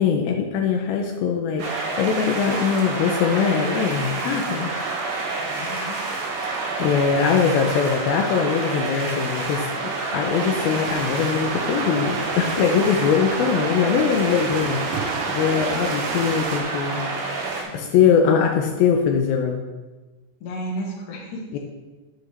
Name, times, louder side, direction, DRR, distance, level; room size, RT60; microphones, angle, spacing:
voice 1, 0.0-4.7 6.8-9.7 10.1-17.0 17.7-19.6 21.5-21.6, left 6 dB, 90° left, 2 dB, 2.2 m, -21 dB
sound 1, 1.6-17.6, right 3 dB, 65° right, 3.4 m, -28 dB
voice 2, 4.2-4.5 5.4-6.0 17.7-18.2 20.4-21.6, equal, 60° left, -1 dB, 2.7 m, -34 dB
sound 2, 10.4-16.6, right 5 dB, 90° right, 1.8 m, -31 dB
8.8 x 8.0 x 3.3 m, 1.2 s
omnidirectional pair, 5.0 m